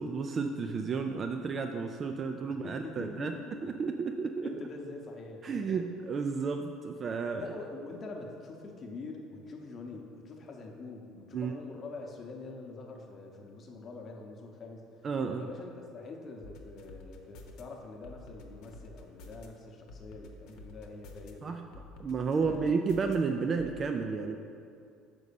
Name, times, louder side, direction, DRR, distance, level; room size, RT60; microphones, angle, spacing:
voice 1, 0.0-3.3 3.6-4.5 5.4-7.5 11.3-11.5 15.0-15.5 21.4-24.4, right 5 dB, 25° right, 5 dB, 0.3 m, -32 dB
voice 2, 2.5-3.9 4.4-5.8 7.3-14.9 15.3-21.5 22.4-22.7, left 3 dB, 30° left, 2 dB, 0.9 m, -45 dB
sound 1, 16.4-17.6 18.0-19.5 19.9-21.3 21.7-23.2 23.6-23.7, left 2 dB, 65° left, 0.9 m, -50 dB
6.1 x 5.3 x 6.8 m, 2.4 s
cardioid pair, 155°, 0 cm